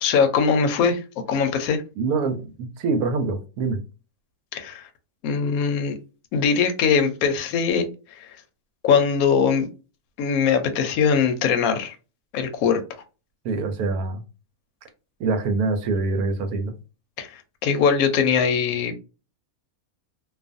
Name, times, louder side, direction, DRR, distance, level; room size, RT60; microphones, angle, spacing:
voice 1, 0.0-1.8 4.5-4.9 5.2-6.0 6.3-8.4 8.8-9.7 10.2-12.0 12.3-12.8 17.2-19.0, left 6 dB, 75° left, 1.0 m, -21 dB
voice 2, 2.0-3.8 13.4-14.2 15.2-16.7, right 3 dB, 85° right, 1.1 m, -25 dB
2.5 x 2.4 x 2.5 m
omnidirectional pair, 1.5 m